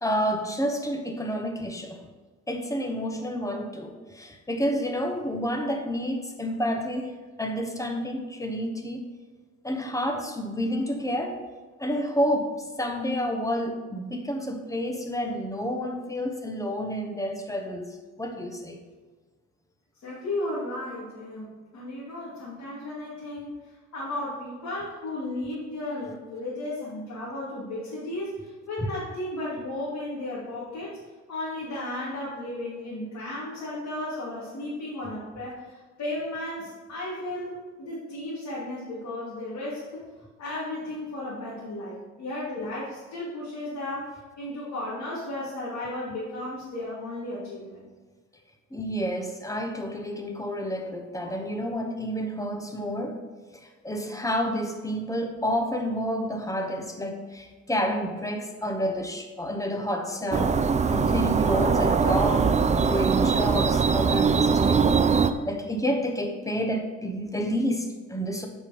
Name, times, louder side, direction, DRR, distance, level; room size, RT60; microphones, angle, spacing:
voice 1, 0.0-2.0 2.5-9.0 9.6-11.4 11.8-18.8 48.7-53.2 53.5-60.6 60.9-64.9 65.4-68.5, equal, 10° left, 4 dB, 1.1 m, -29 dB
voice 2, 20.0-23.6 23.9-31.0 31.3-40.0 40.4-47.9, left 1 dB, 65° left, -8 dB, 2.8 m, -34 dB
sound 1, 60.3-65.3, right 5 dB, 25° right, 0.4 m, -22 dB
8.3 x 5.4 x 5.1 m, 1.4 s
cardioid pair, 105°, 30 cm